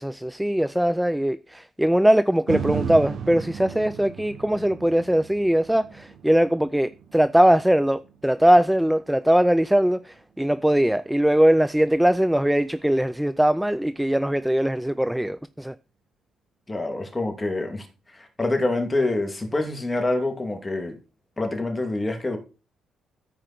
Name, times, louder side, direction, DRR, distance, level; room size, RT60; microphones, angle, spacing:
voice 1, 0.0-15.7, equal, 5° right, 0.4 m, -21 dB
sound 1, 2.5-10.6 11.1-11.2, right 7 dB, 65° right, 1.1 m, -36 dB
voice 2, 16.7-17.9 18.1-21.0 21.4-22.4, left 2 dB, 15° left, 2.7 m, -26 dB
14.0 x 5.0 x 4.4 m
cardioid pair, 90°, 0 cm